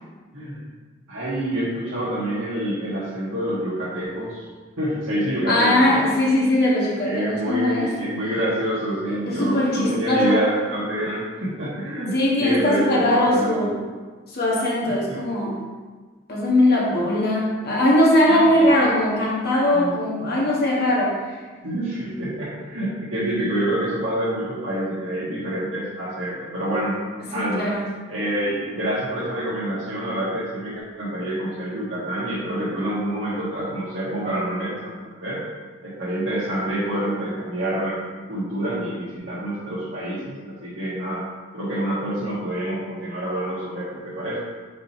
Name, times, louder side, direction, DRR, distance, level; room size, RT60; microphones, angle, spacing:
voice 1, 1.1-4.5 4.8-6.0 7.0-13.7 14.8-15.2 18.3-18.7 19.7-20.0 21.6-27.0 27.3-27.7 28.1-35.4 35.8-38.0 38.3-41.2 41.5-44.4, right 1 dB, 80° right, -10 dB, 1.6 m, -27 dB
voice 2, 5.5-7.9 9.1-10.4 12.1-13.8 14.3-15.6 16.3-21.4 27.3-27.9, left 1 dB, 50° left, -4 dB, 1.6 m, -20 dB
5.3 x 4.3 x 5.4 m, 1.4 s
head